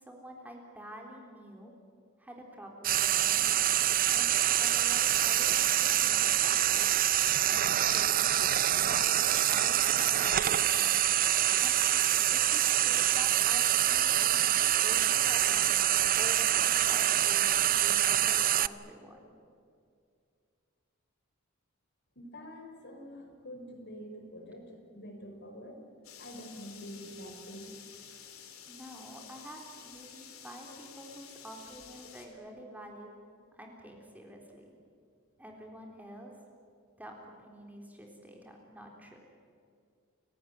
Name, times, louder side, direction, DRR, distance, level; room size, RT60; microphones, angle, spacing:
voice 1, 0.0-1.7 2.2-3.5 4.1-7.2 7.8-8.3 8.8-10.9 11.6-11.8 12.3-15.7 16.2-19.3 28.7-33.1 33.5-34.7 35.4-36.3 37.0-39.2, equal, 10° right, 1 dB, 3.6 m, -48 dB
Frying (food), 2.8-18.7, right 12 dB, 40° right, 0.6 m, -26 dB
voice 2, 22.1-25.8 26.2-27.8, equal, 55° left, 4 dB, 5.2 m, -46 dB
sound 1, 26.0-32.3, left 8 dB, 85° left, 3.6 m, -51 dB
29.5 x 18.0 x 9.4 m, 2.3 s
head